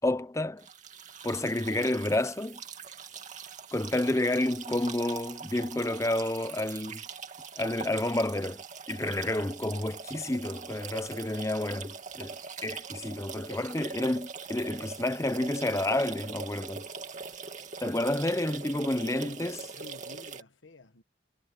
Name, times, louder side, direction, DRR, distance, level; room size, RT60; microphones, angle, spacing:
voice 1, 0.0-0.7 1.2-2.6 3.7-7.0 7.6-12.4 12.6-16.9 17.8-19.6, left 1 dB, 15° left, 0.8 m, -30 dB
sound 1, 0.6-20.4, right 5 dB, 40° right, 2.5 m, -42 dB
voice 2, 18.9-21.0, left 3 dB, 80° left, 1.4 m, -51 dB
head